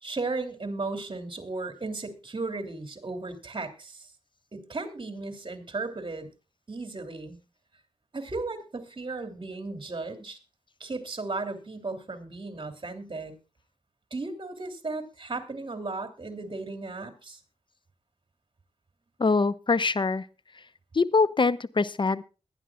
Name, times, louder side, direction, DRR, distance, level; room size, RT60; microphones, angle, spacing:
voice 1, 0.0-4.1 4.5-6.3 6.7-7.4 8.1-10.4 10.8-13.3 14.1-17.4, right 3 dB, 55° right, 6 dB, 3.0 m, -35 dB
voice 2, 19.2-20.3 20.9-22.2, left 4 dB, 50° left, 16 dB, 0.8 m, -23 dB
21.5 x 11.0 x 2.4 m, 0.31 s
wide cardioid pair, 60°, 10 cm